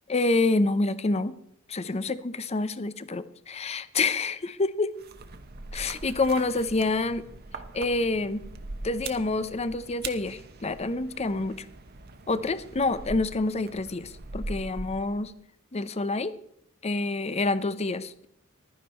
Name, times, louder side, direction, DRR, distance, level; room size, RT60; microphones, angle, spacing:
voice 1, 0.1-1.3 1.7-4.9 5.7-7.3 7.7-8.4 8.8-11.6 12.3-15.3 15.7-16.3 16.8-18.3, left 3 dB, 30° left, 14 dB, 0.6 m, -27 dB
sound 1, 5.0-15.3, right 3 dB, 50° right, 1.0 m, -41 dB
15.0 x 12.0 x 4.3 m, 0.69 s
head